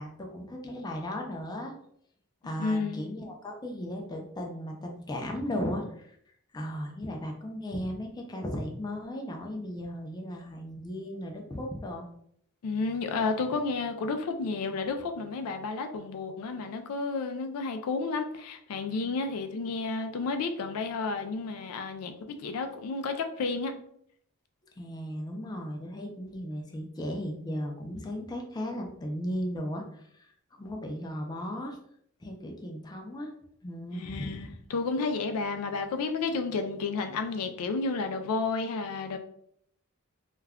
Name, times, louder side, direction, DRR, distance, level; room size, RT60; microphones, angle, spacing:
voice 1, 0.0-1.7 2.4-6.2 6.5-12.0 24.8-30.3 30.6-31.8 32.2-33.3 33.6-34.6, equal, 20° left, 1 dB, 0.4 m, -36 dB
voice 2, 2.6-3.0 12.6-23.7 33.9-39.2, left 4 dB, 80° left, 6 dB, 0.4 m, -31 dB
2.3 x 2.2 x 3.4 m, 0.68 s
head